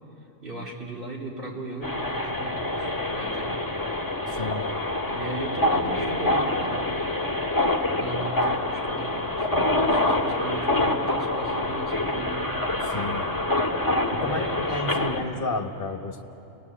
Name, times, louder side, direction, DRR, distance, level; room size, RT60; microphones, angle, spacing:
voice 1, 0.4-3.6 5.1-6.9 7.9-12.6 14.1-15.1, right 2 dB, 45° right, -3 dB, 3.8 m, -37 dB
sound 1, 1.8-15.2, left 1 dB, 15° left, 1.8 m, -26 dB
voice 2, 4.3-4.7 12.8-13.3 14.1-16.2, left 2 dB, 45° left, 5 dB, 1.5 m, -31 dB
29.5 x 19.0 x 8.4 m, 3.0 s
omnidirectional pair, 1.3 m